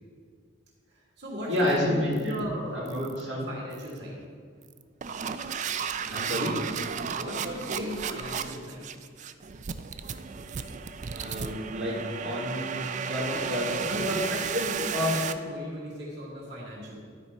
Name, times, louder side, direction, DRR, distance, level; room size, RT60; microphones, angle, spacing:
voice 1, 0.9-3.1 3.5-4.2 7.1-8.9 13.3-14.3 14.7-17.0, equal, 55° right, -4 dB, 2.3 m, -38 dB
voice 2, 1.5-3.5 6.1-6.6 11.1-15.2, left 1 dB, 75° right, -7 dB, 1.7 m, -30 dB
sound 1, 1.6-1.8 2.1-2.4 2.9-3.2 3.7-4.0 4.6-15.3, right 7 dB, 35° right, 0.3 m, -34 dB
12.0 x 5.0 x 4.4 m, 2.1 s
head